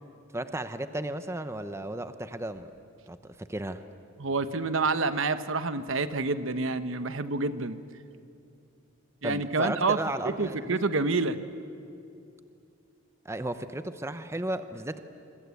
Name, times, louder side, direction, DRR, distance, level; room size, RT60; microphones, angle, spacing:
voice 1, 0.3-2.7 3.1-3.8 9.2-10.8 13.2-15.0, right 1 dB, 15° right, 10 dB, 0.8 m, -34 dB
voice 2, 4.2-7.8 9.2-10.0 10.2-11.4, right 3 dB, 65° right, 11 dB, 1.1 m, -28 dB
26.5 x 25.0 x 8.4 m, 2.6 s
head